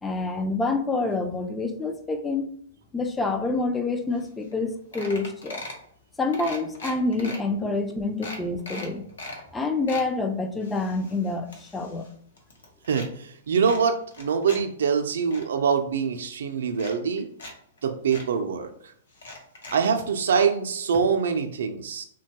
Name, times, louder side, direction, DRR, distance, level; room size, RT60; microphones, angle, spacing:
voice 1, 0.0-2.5 2.9-5.6 6.2-9.1 9.5-12.1, left 3 dB, 10° left, 6 dB, 0.3 m, -27 dB
sound 1, 4.2-4.3 4.5-4.7 4.9-5.8 6.3-7.4 7.8-7.9 8.2-9.4 9.7-10.1 10.6-12.1 12.4-13.1 13.6-14.6 15.0-15.4 16.2-16.3 16.7-17.5 17.8-17.9 18.1-18.3 19.1-20.1 20.9-21.0 21.3-21.4, left 2 dB, 85° left, 0.9 m, -39 dB
voice 2, 12.9-17.3 17.8-18.9 19.7-22.0, right 6 dB, 80° right, 6 dB, 0.4 m, -24 dB
2.9 x 2.2 x 2.8 m, 0.63 s
hypercardioid pair, 145°, 0 cm